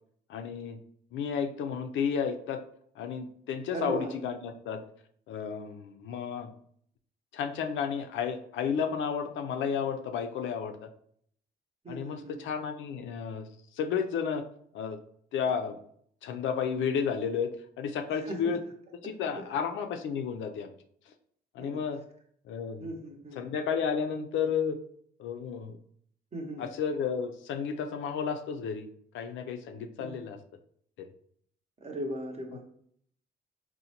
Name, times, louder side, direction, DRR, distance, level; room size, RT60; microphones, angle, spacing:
voice 1, 0.3-0.8 1.1-2.6 3.0-4.8 5.3-6.5 7.3-10.9 11.9-14.4 14.7-15.0 15.3-15.8 16.2-18.6 19.0-20.7 21.1-21.2 21.5-22.0 22.4-22.9 23.3-24.8 25.2-25.8 26.6-28.9 29.1-30.4 31.0-31.1, left 6 dB, 75° left, 6 dB, 0.4 m, -32 dB
voice 2, 3.7-4.1 11.8-12.4 18.2-18.5 19.3-19.4 21.6-21.8 22.8-23.4 26.3-26.7 30.0-30.1 31.8-32.6, right 1 dB, 30° right, 3 dB, 0.7 m, -37 dB
3.9 x 2.1 x 2.8 m, 0.65 s
cardioid pair, 90°, 20 cm